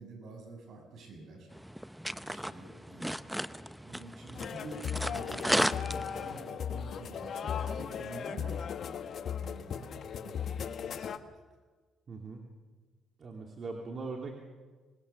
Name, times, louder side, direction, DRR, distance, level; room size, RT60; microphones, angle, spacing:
voice 1, 0.0-1.5 2.2-11.3, right 2 dB, 65° right, 3 dB, 7.1 m, -49 dB
sound 1, 1.5-6.5, equal, 5° right, 0.8 m, -35 dB
sound 2, 4.3-11.2, left 8 dB, 60° left, 1.5 m, -37 dB
voice 2, 12.1-12.4 13.2-14.3, right 3 dB, 50° right, 2 dB, 3.0 m, -40 dB
25.5 x 20.5 x 7.1 m, 1.4 s
cardioid pair, 90°, 0 cm